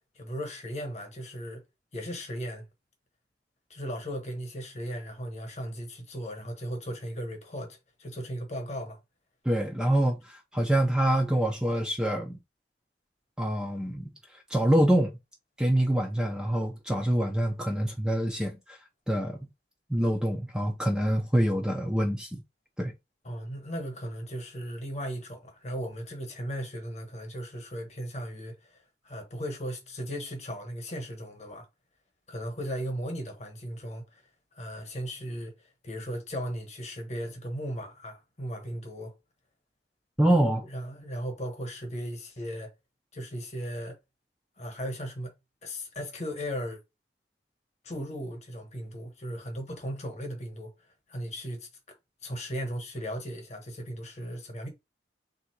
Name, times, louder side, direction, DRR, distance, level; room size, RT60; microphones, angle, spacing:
voice 1, 0.1-1.6 1.9-2.6 3.7-9.0 23.2-31.7 32.3-34.2 34.5-39.2 40.7-42.7 43.1-44.0 44.6-45.3 45.6-46.8 47.8-50.7 51.1-51.7 52.2-54.7, equal, 35° left, 1.1 m, -37 dB
voice 2, 9.4-12.4 13.4-14.1 14.5-15.1 15.6-18.8 19.1-19.4 19.9-22.4 22.8-22.9 40.2-40.6, right 1 dB, 5° right, 0.4 m, -25 dB
3.6 x 2.7 x 4.5 m
head